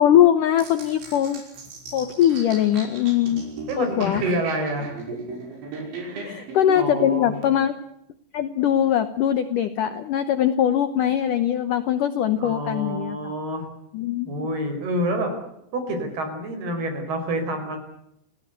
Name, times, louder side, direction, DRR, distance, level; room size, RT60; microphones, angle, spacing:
voice 1, 0.0-1.4 1.9-3.4 3.8-4.3 6.2-7.7 8.3-13.3 13.9-14.5, left 10 dB, 75° left, 11 dB, 2.0 m, -21 dB
sound 1, 0.6-7.5, right 3 dB, 90° right, 7.9 m, -36 dB
voice 2, 3.7-5.0 6.0-6.4 6.7-7.4 12.4-13.7 14.3-15.3 15.7-17.8, right 1 dB, 60° right, 7 dB, 6.9 m, -28 dB
28.0 x 18.5 x 8.2 m, 0.77 s
omnidirectional pair, 5.1 m